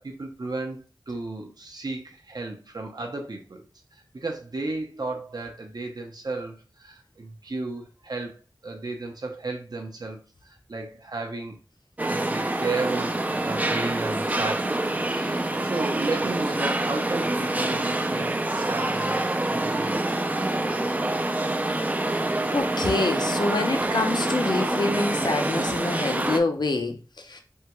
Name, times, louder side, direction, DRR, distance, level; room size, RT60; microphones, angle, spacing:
voice 1, 0.0-11.6 12.1-20.2, right 3 dB, 60° right, 3 dB, 0.6 m, -34 dB
sound 1, 12.0-26.4, right 2 dB, 20° right, 0.3 m, -26 dB
voice 2, 22.1-27.4, left 3 dB, 70° left, 5 dB, 0.6 m, -26 dB
3.5 x 2.2 x 2.9 m, 0.34 s
wide cardioid pair, 45°, 8 cm